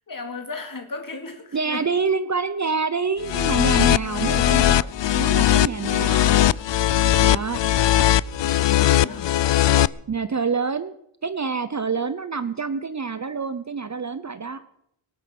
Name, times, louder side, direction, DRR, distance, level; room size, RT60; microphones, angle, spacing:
voice 1, 0.1-1.9 4.1-4.5 8.4-9.4, left 3 dB, 40° left, 5 dB, 2.8 m, -35 dB
voice 2, 1.5-4.9 5.1-6.4 7.2-7.6 10.1-10.9 11.2-14.6, right 5 dB, 35° right, 13 dB, 0.7 m, -27 dB
sound 1, 3.2-9.9, left 12 dB, 60° left, 0.5 m, -19 dB
24.0 x 9.0 x 6.0 m, 0.75 s
wide cardioid pair, 140°, 49 cm